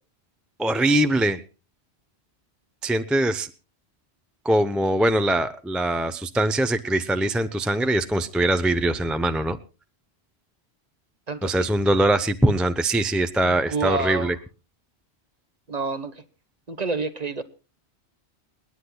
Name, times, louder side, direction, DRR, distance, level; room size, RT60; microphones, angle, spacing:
voice 1, 0.6-1.4 2.8-3.5 4.4-9.6 11.4-14.4, right 1 dB, ahead, 9 dB, 0.6 m, -22 dB
voice 2, 11.3-11.7 13.4-14.3 15.7-16.2 16.7-17.4, right 3 dB, 35° right, 11 dB, 1.2 m, -28 dB
29.5 x 9.9 x 2.3 m, 0.33 s
omnidirectional pair, 1.2 m